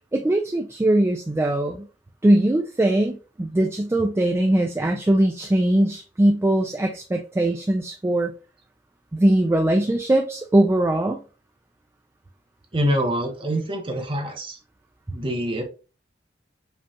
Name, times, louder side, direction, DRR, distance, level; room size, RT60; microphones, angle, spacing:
voice 1, 0.1-1.9 2.2-8.3 9.1-11.2, right 1 dB, 15° right, 3 dB, 0.3 m, -21 dB
voice 2, 12.7-14.6 15.1-15.6, equal, 30° right, 2 dB, 0.8 m, -25 dB
5.1 x 2.3 x 2.8 m, 0.33 s
head